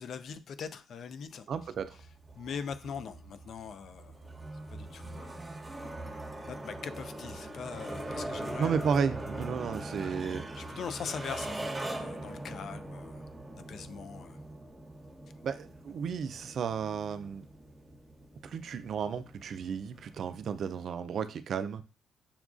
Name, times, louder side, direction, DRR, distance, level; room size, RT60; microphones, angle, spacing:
voice 1, 0.0-1.5 2.4-4.4 4.7-5.4 6.5-8.8 10.6-13.3 13.7-14.4, left 6 dB, 60° left, 0.4 m, -41 dB
sound 1, 1.5-20.8, right 1 dB, 15° right, 1.0 m, -42 dB
voice 2, 1.5-2.0 8.6-10.5 15.4-17.4 18.4-21.8, right 6 dB, 60° right, 0.4 m, -33 dB
6.9 x 2.3 x 2.4 m
cardioid pair, 90°, 0 cm